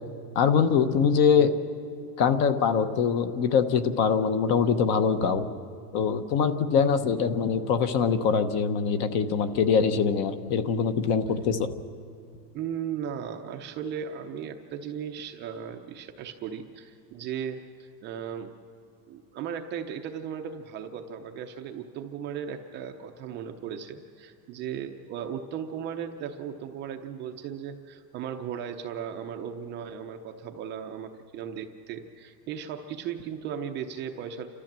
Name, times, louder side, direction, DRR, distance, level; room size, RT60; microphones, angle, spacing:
voice 1, 0.3-1.5 2.2-5.5 5.9-11.7, left 6 dB, 35° left, 10 dB, 0.9 m, -23 dB
voice 2, 12.5-18.5 19.1-34.5, right 8 dB, 25° right, 4 dB, 0.6 m, -36 dB
29.5 x 13.5 x 7.4 m, 2.3 s
supercardioid pair, 160°, 47 cm